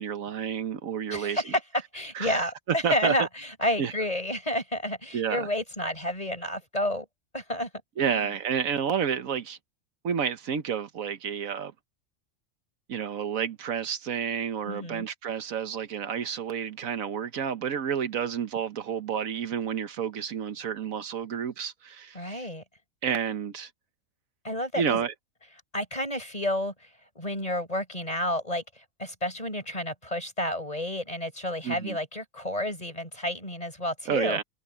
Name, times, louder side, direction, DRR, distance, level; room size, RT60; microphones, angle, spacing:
voice 1, 0.0-1.4 2.1-3.1 3.8-3.9 5.1-5.5 8.0-9.6 10.0-11.7 12.9-22.5 23.0-23.7 24.7-25.1 31.6-32.0 34.1-34.4, right 7 dB, 80° right, 1.4 m, -30 dB
voice 2, 1.1-1.6 1.9-7.1 7.3-7.7 8.1-8.3 14.7-15.1 22.1-22.6 24.4-25.0 25.7-26.9 27.2-34.4, left 1 dB, 25° left, 7.1 m, -30 dB
omnidirectional pair, 1.4 m